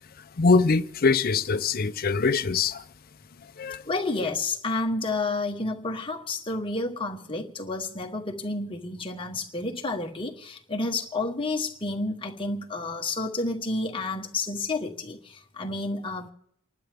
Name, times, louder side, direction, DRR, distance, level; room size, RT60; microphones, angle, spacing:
voice 1, 0.4-2.8 3.6-3.8, left 4 dB, 40° left, 0.5 m, -23 dB
voice 2, 3.8-16.3, left 2 dB, 25° left, 1.2 m, -30 dB
29.0 x 11.5 x 3.5 m
head